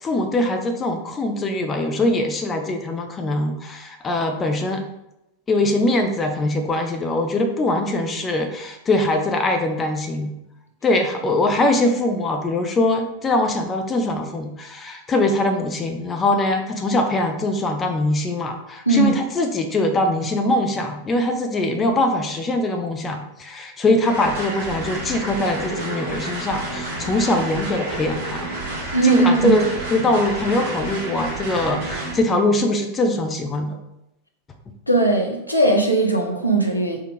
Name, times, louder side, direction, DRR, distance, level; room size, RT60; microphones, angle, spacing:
voice 1, 0.0-4.8 5.5-10.3 10.8-28.4 29.0-33.8, left 2 dB, 20° left, 5 dB, 0.6 m, -22 dB
voice 2, 18.9-19.2 28.9-29.6 34.9-37.0, right 3 dB, 90° left, 0 dB, 0.7 m, -18 dB
sound 1, 24.0-32.2, right 2 dB, 55° right, 1.5 m, -30 dB
4.4 x 2.4 x 4.7 m, 0.86 s
figure-of-eight pair, 90°, 0 cm